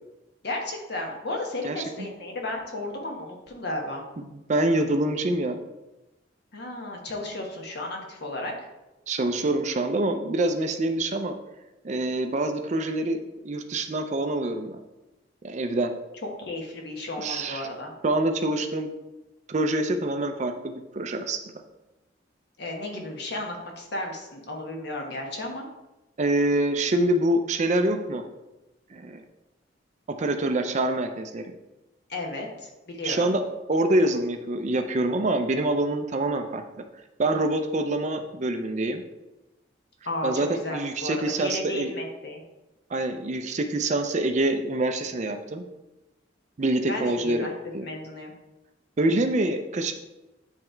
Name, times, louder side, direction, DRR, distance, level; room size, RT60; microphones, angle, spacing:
voice 1, 0.4-4.0 6.5-8.5 16.4-17.9 22.6-25.7 32.1-33.3 40.0-42.4 46.9-47.5 47.8-48.3, left 2 dB, 60° left, 1 dB, 1.3 m, -33 dB
voice 2, 4.2-5.6 9.1-11.4 11.8-14.8 15.4-15.9 17.2-17.7 18.0-18.9 19.5-21.4 26.2-28.2 28.9-29.2 30.1-31.5 33.0-33.4 33.7-36.6 37.2-39.0 40.2-41.9 42.9-45.7 46.6-47.5 47.7-47.9 49.0-49.9, right 1 dB, 40° right, 6 dB, 0.5 m, -25 dB
9.0 x 3.2 x 4.4 m, 1.0 s
head